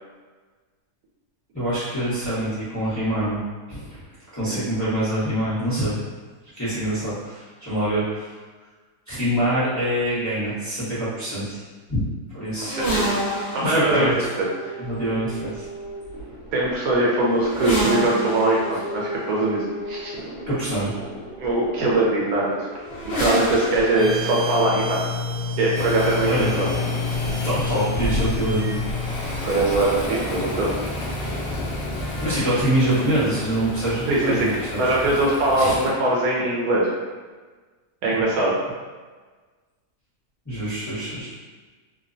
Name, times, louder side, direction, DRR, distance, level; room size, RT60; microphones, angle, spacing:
voice 1, 1.5-3.4 3.7-4.0 4.3-5.9 6.5-8.3 9.1-11.6 11.9-12.0 12.3-12.8 13.6-14.3 14.8-15.7 20.5-20.9 26.3-26.5 27.4-28.8 31.2-31.3 32.2-34.5 34.8-34.9 35.6-35.8 38.1-38.2 40.5-41.3, right 1 dB, 15° left, -13 dB, 0.7 m, -25 dB
sound 1, 12.6-30.3 31.4-32.3, right 1 dB, 55° left, 1.1 m, -31 dB
voice 2, 12.7-13.1 13.5-14.7 16.5-20.2 21.4-22.7 23.0-25.0 25.6-26.7 27.3-27.5 29.2-30.7 34.1-36.9 38.0-38.5, right 2 dB, 75° right, -4 dB, 1.0 m, -22 dB
sound 2, 23.9-32.4, left 4 dB, 40° right, 0.8 m, -29 dB
Waves surf, 25.8-35.9, left 2 dB, 70° left, 0.6 m, -32 dB
2.8 x 2.1 x 2.5 m, 1.4 s
omnidirectional pair, 1.7 m